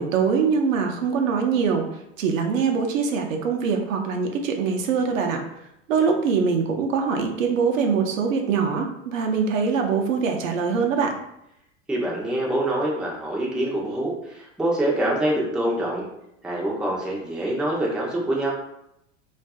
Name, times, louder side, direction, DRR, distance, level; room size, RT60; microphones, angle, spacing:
voice 1, 0.0-1.9 2.2-5.4 5.9-11.1, right 5 dB, 70° right, 3 dB, 0.6 m, -23 dB
voice 2, 11.9-16.1 16.4-18.5, right 1 dB, ahead, -4 dB, 0.4 m, -25 dB
2.5 x 2.4 x 2.3 m, 0.81 s
hypercardioid pair, 90°, 40 cm